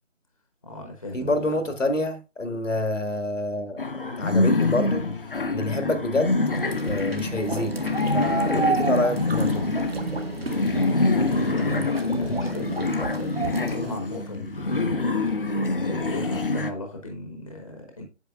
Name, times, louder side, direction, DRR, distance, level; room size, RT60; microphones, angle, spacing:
voice 1, 0.6-1.5 11.2-15.0 15.8-18.0, left 2 dB, 30° left, 1.0 m, -37 dB
voice 2, 1.1-3.9 4.2-5.1 5.5-6.4 6.8-7.8 8.1-9.7, left 1 dB, 75° left, 1.6 m, -27 dB
sound 1, 3.8-16.7, left 3 dB, 45° left, 0.7 m, -26 dB
sound 2, 6.5-13.9, right 3 dB, 50° right, 1.1 m, -31 dB
8.1 x 7.1 x 2.4 m
figure-of-eight pair, 165°, 37 cm